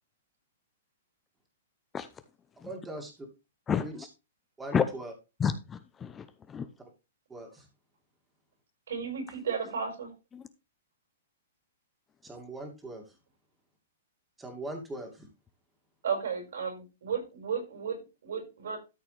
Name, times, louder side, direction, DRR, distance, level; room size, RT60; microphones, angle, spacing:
voice 1, 2.6-3.3 3.7-3.9 4.6-5.1 7.3-7.7 12.2-13.0 14.4-15.3, right 1 dB, 10° right, 2.4 m, -41 dB
voice 2, 3.7-4.0 4.7-4.9 5.4-6.7 10.3-10.5, left 7 dB, 15° left, 0.6 m, -30 dB
voice 3, 8.9-10.1 16.0-17.9 18.2-18.8, right 6 dB, 80° right, 5.5 m, -33 dB
13.0 x 5.8 x 3.3 m
hypercardioid pair, 155°, 0 cm